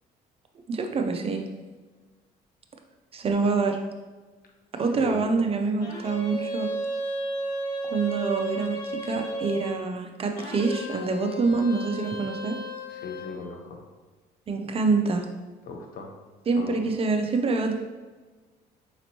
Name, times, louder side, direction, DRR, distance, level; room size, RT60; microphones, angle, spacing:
voice 1, 0.7-1.5 3.1-3.8 4.7-6.7 7.9-12.5 14.5-15.3 16.5-17.7, right 4 dB, 35° right, 4 dB, 0.5 m, -26 dB
voice 2, 4.9-5.2 12.9-13.8 15.6-16.1 16.6-16.9, left 3 dB, 60° left, 2 dB, 0.8 m, -37 dB
sound 1, 5.8-9.8 10.3-13.4, right 1 dB, 85° left, 0.9 m, -33 dB
5.1 x 3.0 x 2.8 m, 1.3 s
cardioid pair, 110°, 17 cm